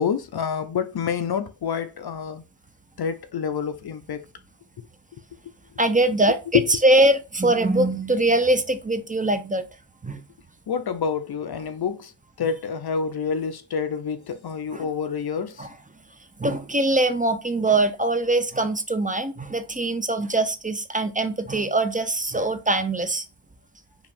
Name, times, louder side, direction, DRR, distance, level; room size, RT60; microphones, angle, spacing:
voice 1, 0.0-2.4 3.0-4.2 5.5-5.6 6.5-6.8 10.7-12.1 12.4-15.7, left 7 dB, 55° left, 0.5 m, -27 dB
voice 2, 5.8-9.6 10.0-10.2 14.7-14.9 15.6-15.7 16.4-23.2, right 2 dB, 20° right, 0.4 m, -22 dB
4.8 x 2.6 x 3.5 m
wide cardioid pair, 125°, 48 cm